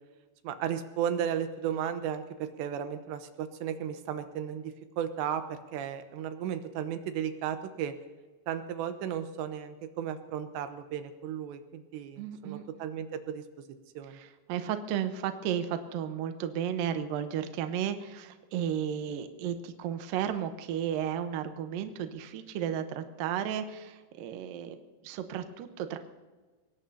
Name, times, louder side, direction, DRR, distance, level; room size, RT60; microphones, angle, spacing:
voice 1, 0.4-7.9 8.5-13.4 14.0-14.2, right 9 dB, 90° right, 8 dB, 3.2 m, -34 dB
voice 2, 12.2-12.7 14.1-24.8 25.0-26.0, right 9 dB, 70° right, 8 dB, 2.3 m, -33 dB
23.5 x 19.5 x 2.8 m, 1.3 s
omnidirectional pair, 4.9 m